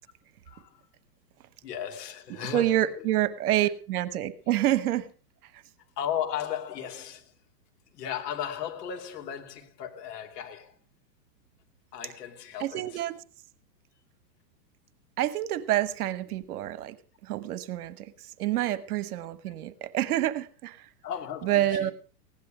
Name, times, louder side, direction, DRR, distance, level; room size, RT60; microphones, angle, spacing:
voice 1, 0.5-0.8 1.6-3.1 3.6-3.7 6.0-7.3 7.9-10.8 11.9-13.0 21.0-21.9, left 9 dB, 70° left, 2.7 m, -36 dB
voice 2, 2.5-5.1 12.6-13.1 15.2-17.0 17.2-18.1 18.4-20.9 21.4-21.9, right 13 dB, 60° right, 1.3 m, -27 dB
16.5 x 10.5 x 5.0 m
hypercardioid pair, 140°, 50 cm